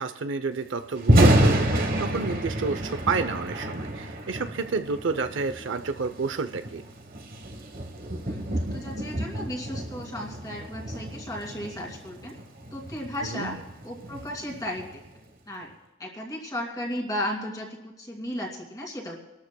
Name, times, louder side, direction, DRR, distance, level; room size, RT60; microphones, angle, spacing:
voice 1, 0.0-6.8 13.2-13.6, right 4 dB, 65° right, 10 dB, 0.7 m, -30 dB
Thunder, 0.9-15.1, right 1 dB, 45° right, 1.2 m, -28 dB
voice 2, 8.2-12.4 12.7-13.6 13.8-14.9 15.5-15.7 16.0-19.2, left 1 dB, 20° left, -1 dB, 2.5 m, -35 dB
27.0 x 13.0 x 2.3 m, 1.0 s
head